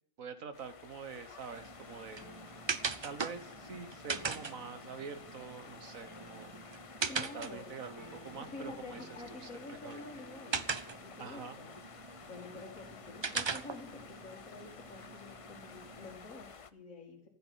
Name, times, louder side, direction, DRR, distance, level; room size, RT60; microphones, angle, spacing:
voice 1, 0.2-2.3 3.0-6.6 7.2-9.0 9.7-10.0 11.2-11.6, right 5 dB, 85° right, 9 dB, 1.8 m, -45 dB
sound 1, 0.5-16.7, left 6 dB, 40° left, 0.5 m, -52 dB
sound 2, 1.5-16.2, right 5 dB, 40° right, 0.4 m, -42 dB
sound 3, 2.2-12.3, right 2 dB, 15° right, 2.5 m, -58 dB
voice 2, 7.1-7.7 8.3-11.8 12.3-17.3, left 2 dB, 75° left, -1 dB, 2.5 m, -48 dB
14.5 x 7.8 x 9.4 m, 0.67 s
omnidirectional pair, 1.4 m